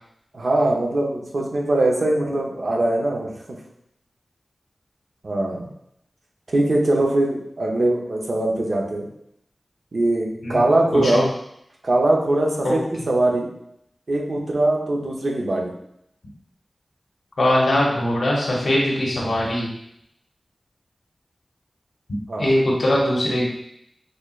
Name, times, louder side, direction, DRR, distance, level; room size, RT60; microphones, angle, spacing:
voice 1, 0.3-3.3 5.2-5.7 6.5-9.1 9.9-11.2 11.8-13.5 14.1-15.7 22.3-22.5, right 1 dB, 65° right, -1 dB, 0.8 m, -21 dB
voice 2, 10.9-11.2 12.6-12.7 17.4-19.7 22.4-23.4, left 1 dB, 85° left, -4 dB, 0.9 m, -21 dB
4.3 x 3.3 x 2.4 m, 0.76 s
wide cardioid pair, 60°, 0 cm